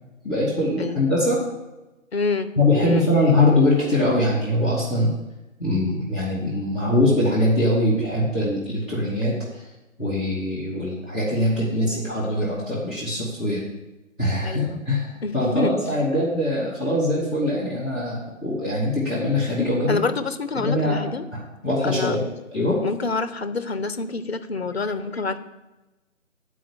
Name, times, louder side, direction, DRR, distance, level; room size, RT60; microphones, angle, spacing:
voice 1, 0.2-1.4 2.5-5.1 5.6-9.6 10.0-13.6 14.2-20.0 20.5-21.0 21.3-22.2 22.5-22.8, left 1 dB, 5° right, -10 dB, 0.9 m, -22 dB
voice 2, 2.1-2.5 2.8-3.1 14.4-14.8 15.2-15.8 19.9-21.2 21.8-22.1 22.8-25.4, left 3 dB, 50° left, 12 dB, 0.7 m, -27 dB
7.9 x 4.8 x 7.2 m, 1.0 s
figure-of-eight pair, 150°, 40 cm